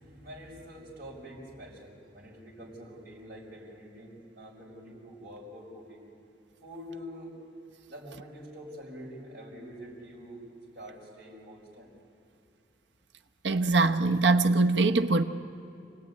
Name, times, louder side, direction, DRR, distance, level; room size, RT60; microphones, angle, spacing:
voice 1, 0.0-6.1 6.6-7.4 7.9-10.4 10.7-11.9, equal, 55° right, 5.3 m, -46 dB
voice 2, 13.4-15.2, right 3 dB, 75° right, 1.0 m, -23 dB
27.5 x 18.0 x 9.5 m
head